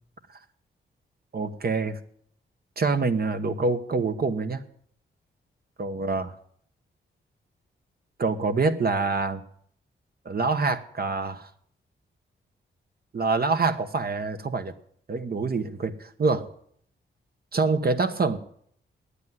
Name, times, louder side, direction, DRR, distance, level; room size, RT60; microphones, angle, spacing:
voice 1, 1.3-2.0 2.8-4.6 5.8-6.3 8.2-9.4 10.2-11.5 13.1-14.7 15.1-16.5 17.5-18.4, right 4 dB, 50° right, 8 dB, 1.1 m, -26 dB
9.6 x 8.3 x 9.5 m, 0.64 s
cardioid pair, 60°, 21 cm